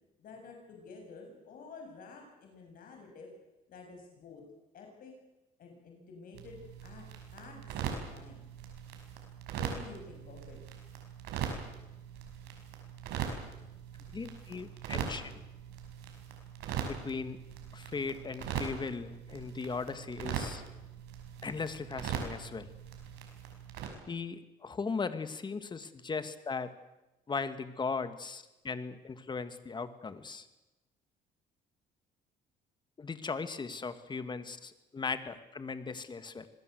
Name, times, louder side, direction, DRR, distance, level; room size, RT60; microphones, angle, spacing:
voice 1, 0.2-3.3 3.7-4.4 4.7-5.1 5.6-7.1 7.3-8.5 9.5-10.6, left 4 dB, 55° left, 2 dB, 7.1 m, -50 dB
sound 1, 6.3-23.9, right 8 dB, 85° right, 5.7 m, -41 dB
voice 2, 14.1-15.4 16.8-17.4 17.7-20.6 21.4-22.7 24.1-26.7 27.3-30.5 33.0-36.5, left 4 dB, 25° left, 11 dB, 2.2 m, -38 dB
26.5 x 20.0 x 8.0 m, 1.0 s
cardioid pair, 110°, 17 cm